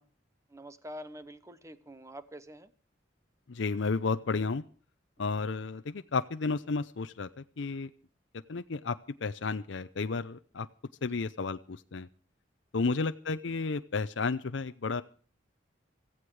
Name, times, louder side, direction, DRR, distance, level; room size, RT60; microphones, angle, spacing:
voice 1, 0.5-2.7 5.2-5.3 11.1-11.2 12.8-12.9, equal, 15° right, 13 dB, 1.0 m, -46 dB
voice 2, 3.5-4.6 5.2-7.3 7.6-7.9 8.5-10.7 11.0-12.1 12.7-15.0, left 4 dB, 75° left, 10 dB, 0.6 m, -32 dB
16.5 x 15.0 x 4.8 m, 0.41 s
head